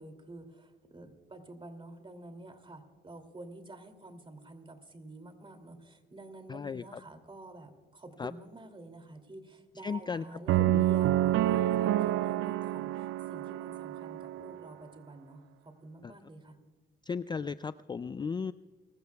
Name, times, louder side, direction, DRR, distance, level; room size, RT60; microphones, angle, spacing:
voice 1, 0.0-16.6, right 2 dB, 25° right, 7 dB, 2.7 m, -49 dB
voice 2, 6.5-6.8 8.2-8.3 9.8-10.2 10.7-10.8 17.1-18.5, left 5 dB, 20° left, 14 dB, 0.3 m, -35 dB
sound 1, 10.5-14.6, right 13 dB, 85° right, 0.5 m, -28 dB
29.5 x 16.0 x 2.3 m, 1.4 s
cardioid pair, 90°, 20 cm